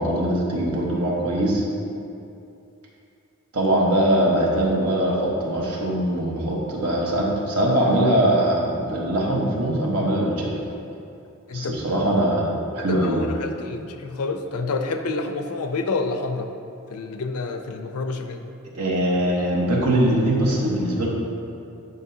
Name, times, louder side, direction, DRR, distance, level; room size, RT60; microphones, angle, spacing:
voice 1, 0.0-1.6 3.5-10.5 11.5-12.5 12.7-13.3 18.7-21.1, right 1 dB, 85° right, -3 dB, 1.3 m, -22 dB
voice 2, 12.8-16.5 16.9-18.4, left 3 dB, 80° left, 6 dB, 0.6 m, -28 dB
9.5 x 5.3 x 2.8 m, 2.7 s
head